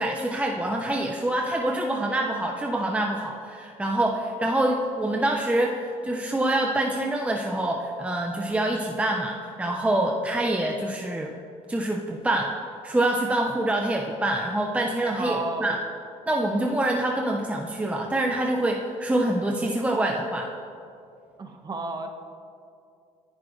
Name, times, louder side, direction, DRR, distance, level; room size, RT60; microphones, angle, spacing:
voice 1, 0.0-11.3 11.7-12.5 12.8-15.8 16.3-20.5, right 1 dB, 10° right, 0 dB, 0.9 m, -26 dB
voice 2, 15.1-15.7 21.4-22.1, right 3 dB, 30° right, 4 dB, 1.5 m, -31 dB
27.0 x 10.5 x 3.3 m, 2.5 s
cardioid pair, 115°, 14 cm